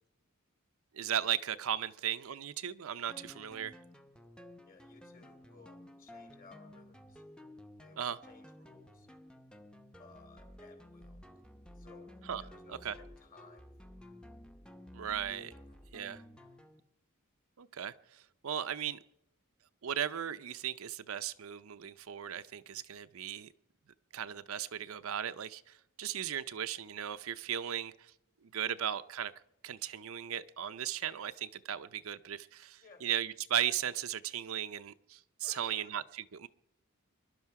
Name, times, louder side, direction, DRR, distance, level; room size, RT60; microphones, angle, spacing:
voice 1, 0.9-3.8 8.0-8.2 12.3-12.4 12.7-12.9 14.9-15.5 15.9-16.2 17.6-19.0 19.8-23.5 24.1-28.1 28.4-29.3 29.6-36.5, right 10 dB, 70° right, 0.6 m, -37 dB
sound 1, 3.1-16.8, left 1 dB, 5° left, 0.7 m, -53 dB
voice 2, 4.6-7.2 7.8-9.1 10.0-11.2 11.7-14.2 15.5-15.8 32.8-33.1 35.4-36.0, left 4 dB, 45° left, 2.8 m, -59 dB
24.5 x 11.5 x 4.7 m
head